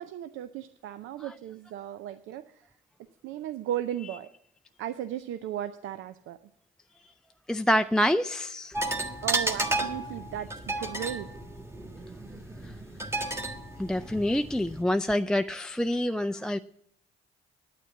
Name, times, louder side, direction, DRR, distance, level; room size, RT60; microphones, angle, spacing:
voice 1, 0.0-2.6 3.2-4.3 4.8-6.4 9.2-10.5 10.8-11.3, right 11 dB, 90° right, 0.5 m, -35 dB
voice 2, 7.5-8.8 13.8-16.6, equal, 5° left, 0.3 m, -26 dB
sound 1, 8.7-14.8, right 2 dB, 15° right, 1.5 m, -33 dB
9.2 x 8.9 x 7.1 m
cardioid pair, 90°, 20 cm